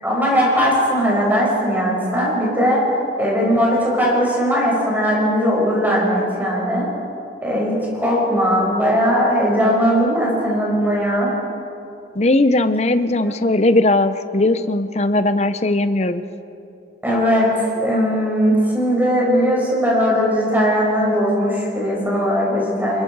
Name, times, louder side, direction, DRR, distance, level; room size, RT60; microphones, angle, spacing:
voice 1, 0.0-2.8 3.2-6.9 7.4-11.3 17.0-23.0, equal, 10° right, -4 dB, 5.9 m, -19 dB
voice 2, 12.1-16.2, left 2 dB, 35° left, 11 dB, 0.7 m, -18 dB
25.5 x 21.5 x 4.7 m, 2.7 s
head